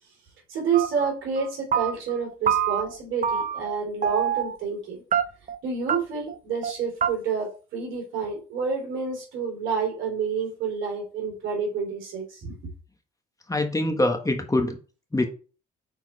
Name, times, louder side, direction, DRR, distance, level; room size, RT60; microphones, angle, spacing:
voice 1, 0.5-5.0 5.6-12.5, right 5 dB, 70° right, 3.4 m, -29 dB
sound 1, 0.7-1.1 1.4-2.2 2.5-3.0 3.2-3.8 4.0-4.6 5.1-5.6 5.9-6.0 6.3-6.4 6.6-6.7 7.0-7.1, right 8 dB, 40° right, 0.8 m, -25 dB
voice 2, 13.5-14.8 15.1-15.3, left 1 dB, 15° left, 1.6 m, -24 dB
6.4 x 4.4 x 4.3 m
supercardioid pair, 60°, 20 cm